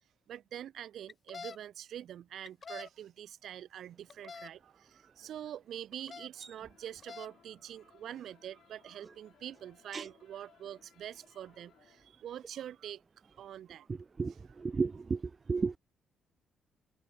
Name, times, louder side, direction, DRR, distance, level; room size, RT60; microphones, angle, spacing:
voice 1, 0.3-13.0 13.3-13.9 14.3-14.6, right 10 dB, 70° right, 4.7 m, -45 dB
sound 1, 1.1-1.6 2.4-2.9 4.1-4.5 5.9-6.3 6.9-7.3, left 5 dB, 40° left, 1.6 m, -45 dB
sound 2, 6.6-12.1, left 10 dB, 70° left, 5.7 m, -66 dB
voice 2, 14.2-15.2 15.5-15.8, right 4 dB, 30° right, 0.3 m, -32 dB
cardioid pair, 90°, 0 cm